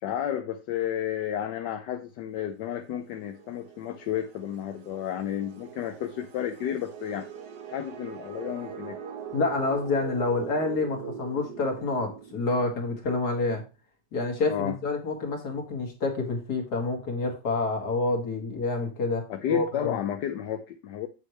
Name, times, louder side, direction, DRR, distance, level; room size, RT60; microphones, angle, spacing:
voice 1, 0.0-7.3 7.7-9.0 14.5-14.8 19.3-21.1, left 10 dB, 85° left, 1.4 m, -32 dB
sound 1, 2.5-13.0, right 7 dB, 80° right, 1.7 m, -42 dB
voice 2, 9.3-13.6 14.1-20.0, left 3 dB, 70° left, 2.6 m, -28 dB
8.2 x 7.5 x 3.1 m
omnidirectional pair, 1.8 m